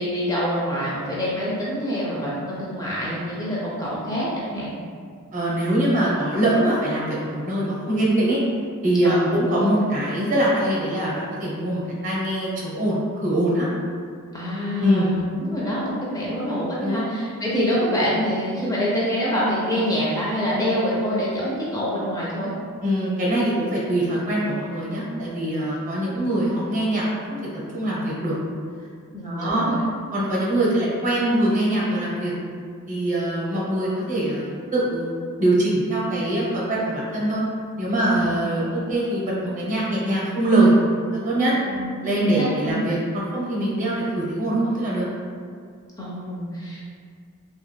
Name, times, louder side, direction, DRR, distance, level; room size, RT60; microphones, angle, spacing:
voice 1, 0.0-4.8 9.0-9.3 14.3-22.5 29.1-29.9 37.9-38.4 41.6-42.8 46.0-46.8, equal, 15° left, -7 dB, 0.4 m, -26 dB
voice 2, 5.3-8.4 8.8-13.7 14.8-15.1 16.8-17.0 22.8-27.4 27.7-28.3 29.2-29.7 30.1-32.3 32.9-37.4 37.8-40.7 41.2-41.5 42.0-45.1, right 1 dB, 35° right, -5 dB, 0.7 m, -23 dB
2.3 x 2.2 x 3.1 m, 2.1 s
head